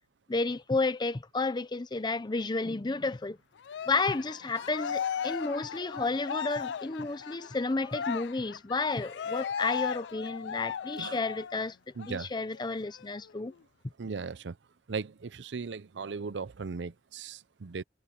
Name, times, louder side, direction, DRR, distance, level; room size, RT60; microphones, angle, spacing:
voice 1, 0.3-3.4 3.9-11.8 12.1-13.5, left 3 dB, 25° left, 0.6 m, -31 dB
Cheering, 3.6-11.6 12.0-12.2 12.5-13.5, left 7 dB, 75° left, 0.4 m, -37 dB
voice 2, 12.0-12.3 14.0-14.6 14.9-17.8, right 5 dB, 85° right, 0.6 m, -37 dB
head